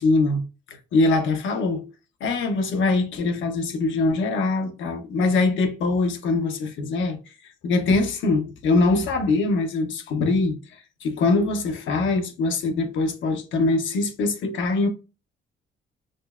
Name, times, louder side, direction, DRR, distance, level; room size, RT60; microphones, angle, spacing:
voice 1, 0.0-1.9 2.2-7.2 7.6-10.6 11.0-14.9, left 3 dB, 75° left, 0.7 m, -23 dB
5.1 x 2.0 x 2.3 m
cardioid pair, 90°, 20 cm